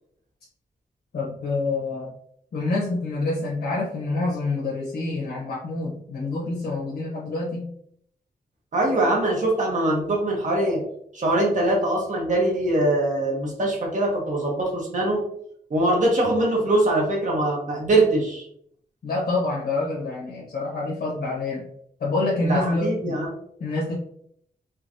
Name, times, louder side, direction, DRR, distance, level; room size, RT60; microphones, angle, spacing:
voice 1, 1.1-2.1 2.5-7.7 19.0-21.6 22.0-23.2 23.6-23.9, left 2 dB, 75° left, -6 dB, 1.4 m, -27 dB
voice 2, 8.7-10.8 11.1-15.2 15.7-18.4 22.5-23.3, right 1 dB, 50° right, -2 dB, 1.4 m, -22 dB
5.4 x 3.1 x 2.9 m, 0.67 s
wide cardioid pair, 145°, 16 cm